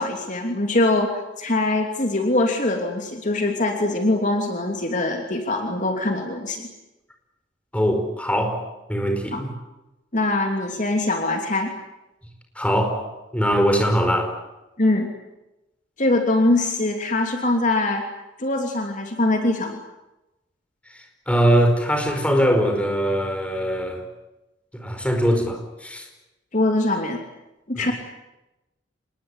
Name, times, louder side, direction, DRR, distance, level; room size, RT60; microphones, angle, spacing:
voice 1, 0.0-6.7 9.3-9.4 10.1-11.7 14.8-15.1 16.0-18.0 18.4-19.8 26.5-27.2 27.7-27.9, left 2 dB, 40° left, 3 dB, 2.9 m, -22 dB
voice 2, 7.7-8.6 8.9-9.5 12.5-14.4 21.3-24.0 24.7-26.1 27.7-27.9, equal, 5° left, 4 dB, 4.9 m, -21 dB
26.5 x 20.5 x 9.9 m, 0.98 s
head